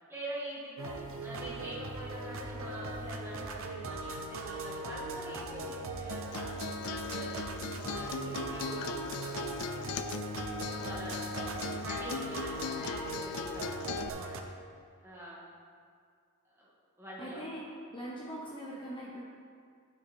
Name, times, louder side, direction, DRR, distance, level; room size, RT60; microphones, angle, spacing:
voice 1, 0.1-9.6 10.7-14.4 15.0-15.5 16.5-16.7 17.0-17.4, right 1 dB, 10° right, -8 dB, 2.2 m, -45 dB
sound 1, 0.8-14.4, right 3 dB, 65° right, 0.7 m, -39 dB
Acoustic guitar, 6.1-14.1, left 7 dB, 75° left, 0.3 m, -39 dB
voice 2, 17.2-17.6 17.9-19.2, equal, 20° left, -5 dB, 0.9 m, -41 dB
12.5 x 5.4 x 3.5 m, 2.2 s
head